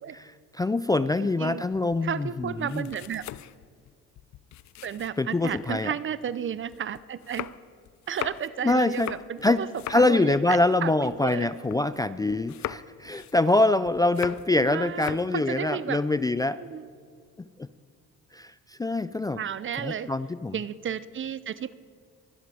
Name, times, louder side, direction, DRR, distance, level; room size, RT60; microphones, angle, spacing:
voice 1, 0.1-2.9 5.2-5.9 8.6-9.1 9.4-9.6 9.9-16.6 17.6-17.7 18.3-19.4 19.8-20.6, left 2 dB, 15° left, 13 dB, 0.3 m, -25 dB
sound 1, 1.7-5.8 6.2-12.0 12.3-14.6 14.9-15.4, left 13 dB, 65° left, 0.5 m, -41 dB
voice 2, 2.0-3.2 4.8-7.5 8.1-9.7 9.9-11.5 14.5-16.0 16.6-16.9 19.4-20.1 20.5-21.7, right 8 dB, 40° right, 17 dB, 0.6 m, -33 dB
23.0 x 11.0 x 4.9 m, 2.2 s
cardioid pair, 90°, 30 cm